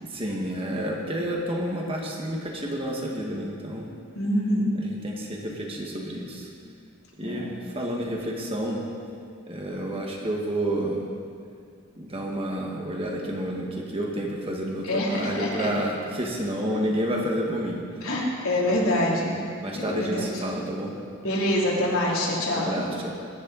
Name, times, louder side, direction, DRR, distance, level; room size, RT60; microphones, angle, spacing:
voice 1, 0.0-3.9 4.8-6.5 7.2-8.8 9.5-11.0 11.9-17.8 18.6-18.8 19.6-20.9 22.5-23.1, right 1 dB, 25° right, -1 dB, 1.8 m, -30 dB
voice 2, 4.1-4.7 7.2-7.5 14.9-15.7 18.0-19.4 19.7-20.4 21.2-22.8, left 1 dB, 75° left, -5 dB, 3.5 m, -25 dB
21.5 x 10.0 x 4.2 m, 2.3 s
head